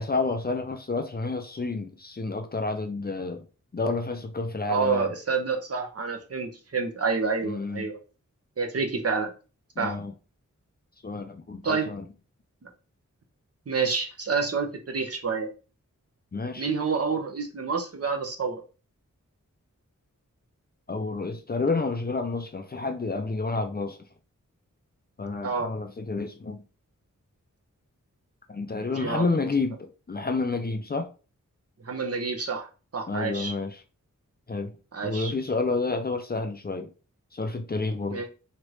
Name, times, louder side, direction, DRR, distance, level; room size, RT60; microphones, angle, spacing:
voice 1, 0.0-3.4 3.7-5.1 7.4-7.9 9.8-10.1 11.0-12.0 16.3-16.7 20.9-24.0 25.2-26.6 28.5-31.1 33.1-33.7 34.5-34.8 35.0-36.9 37.3-38.3, left 3 dB, 30° left, 0.5 m, -29 dB
voice 2, 4.7-8.0 8.6-9.3 9.8-10.0 11.6-11.9 13.7-15.5 16.6-18.6 25.4-25.7 28.9-29.3 31.8-33.5 34.9-35.3 38.1-38.3, right 4 dB, 50° right, 0.7 m, -28 dB
3.1 x 2.5 x 3.0 m
wide cardioid pair, 60°, 31 cm